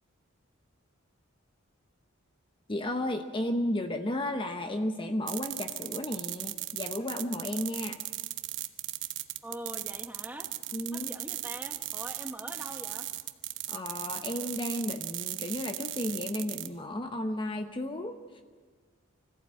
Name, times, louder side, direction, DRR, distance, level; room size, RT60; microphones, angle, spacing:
voice 1, 2.7-8.0 10.7-11.1 13.7-18.4, left 1 dB, 25° left, 6 dB, 0.9 m, -33 dB
sound 1, 5.3-16.7, right 14 dB, 60° right, 1.0 m, -37 dB
voice 2, 9.4-10.5 10.9-13.1, right 1 dB, 10° right, 5 dB, 1.5 m, -42 dB
25.5 x 15.0 x 8.7 m, 1.5 s
head